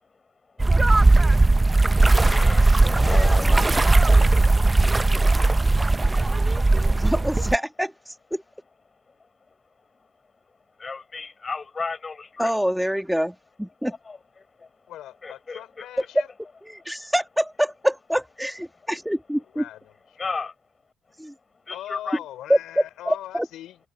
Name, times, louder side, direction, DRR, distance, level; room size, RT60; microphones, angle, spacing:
sound 1, 0.6-7.6, right 2 dB, 20° right, 0.6 m, -18 dB
voice 1, 2.2-3.8 10.8-12.5 14.1-14.2 15.2-15.9 20.2-20.5 21.7-22.2, left 4 dB, 30° left, 7.1 m, -33 dB
voice 2, 7.0-7.9 8.3-8.4 12.4-13.9 16.6-19.6 21.2-21.3 22.5-23.5, equal, ahead, 2.0 m, -25 dB
voice 3, 14.9-16.3 19.5-19.9 20.4-20.5 21.7-23.8, left 12 dB, 85° left, 4.0 m, -40 dB
cardioid pair, 90°, 0 cm